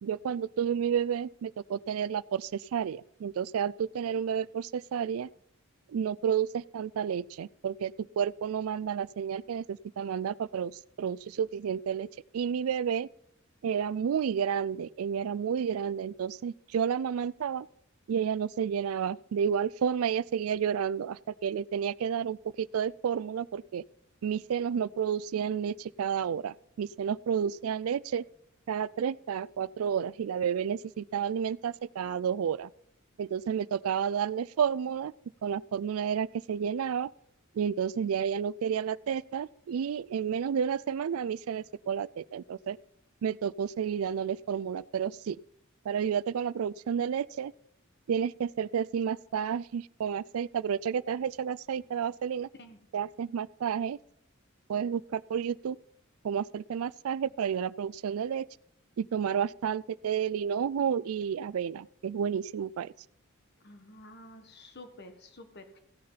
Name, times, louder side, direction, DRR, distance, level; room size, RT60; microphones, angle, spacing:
voice 1, 0.0-5.3 5.9-10.7 11.0-12.1 12.3-13.1 13.6-17.7 18.1-23.8 24.2-28.2 28.7-32.7 33.2-35.1 35.4-37.1 37.6-42.8 43.2-45.4 45.9-47.5 48.1-52.5 52.9-54.0 54.7-55.8 56.2-58.5 59.0-62.9, right 7 dB, 85° right, 0.4 m, -31 dB
voice 2, 63.6-65.8, left 1 dB, 55° left, 1.6 m, -50 dB
15.5 x 6.6 x 5.6 m
head